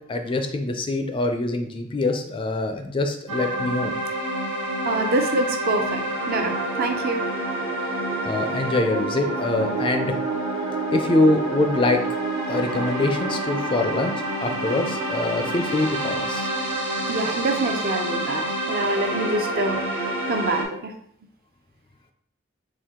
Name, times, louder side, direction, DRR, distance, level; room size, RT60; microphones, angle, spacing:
voice 1, 0.1-4.0 8.2-10.2 10.6-12.0 12.5-16.5, left 2 dB, 25° left, 5 dB, 0.4 m, -24 dB
sound 1, 3.3-20.6, right 2 dB, 90° right, 1.2 m, -28 dB
voice 2, 4.8-7.2 17.1-20.9, right 2 dB, 45° right, 4 dB, 0.5 m, -26 dB
4.4 x 2.4 x 3.6 m, 0.65 s
head